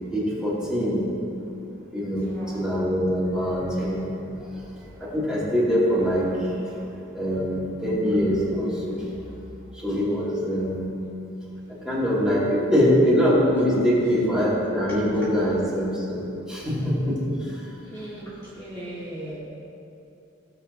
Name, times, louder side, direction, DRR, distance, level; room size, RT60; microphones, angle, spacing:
voice 1, 0.1-1.1 1.9-4.1 5.0-6.8 7.1-9.1 9.8-10.9 11.8-17.2 19.3-19.4, equal, 5° right, -9 dB, 2.3 m, -23 dB
voice 2, 2.2-2.6 17.5-19.4, right 1 dB, 15° left, -11 dB, 1.9 m, -38 dB
17.0 x 7.3 x 2.7 m, 2.8 s
head